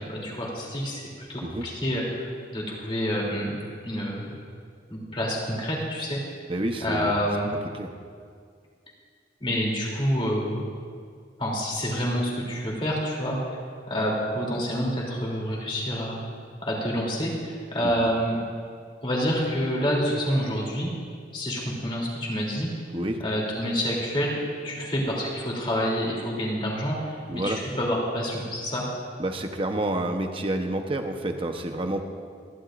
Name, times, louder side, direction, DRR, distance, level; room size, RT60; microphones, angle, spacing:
voice 1, 0.0-3.5 3.8-4.3 4.9-6.2 6.8-7.5 9.4-10.6 11.4-13.6 13.9-16.2 16.6-18.4 19.0-20.9 21.3-22.7 23.2-24.4 24.6-28.8, equal, 30° left, -3 dB, 3.0 m, -28 dB
voice 2, 6.5-7.1 7.7-7.9 17.8-18.1 22.9-23.2 27.3-27.6 29.2-32.0, right 1 dB, 30° right, 5 dB, 0.9 m, -29 dB
26.5 x 11.5 x 2.5 m, 2.1 s
head